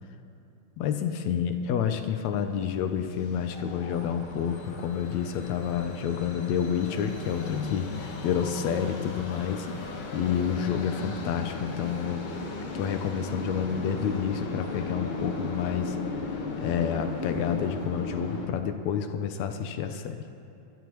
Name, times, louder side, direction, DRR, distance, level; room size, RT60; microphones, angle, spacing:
voice 1, 0.8-9.7 10.1-12.2 12.7-16.0 16.6-20.2, left 8 dB, 75° left, 7 dB, 1.9 m, -29 dB
sound 1, 2.4-18.5, left 3 dB, 55° left, 1.8 m, -36 dB
24.5 x 13.0 x 3.0 m, 2.8 s
omnidirectional pair, 3.4 m